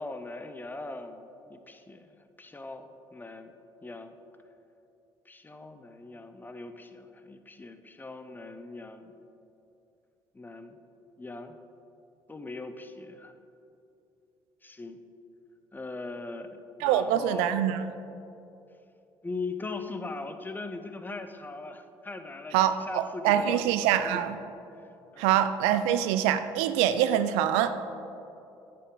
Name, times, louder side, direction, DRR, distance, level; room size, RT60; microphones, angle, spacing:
voice 1, 0.0-3.5 3.8-4.2 5.3-9.1 10.3-10.8 11.2-11.6 12.3-13.3 14.6-15.0 15.7-16.5 16.8-17.5 19.2-24.3 24.8-25.4, left 3 dB, 20° left, 8 dB, 0.7 m, -40 dB
voice 2, 16.8-17.8 22.5-24.4 25.2-27.8, right 10 dB, 85° right, 11 dB, 0.4 m, -25 dB
8.9 x 6.6 x 3.9 m, 2.8 s
supercardioid pair, 65°, 11 cm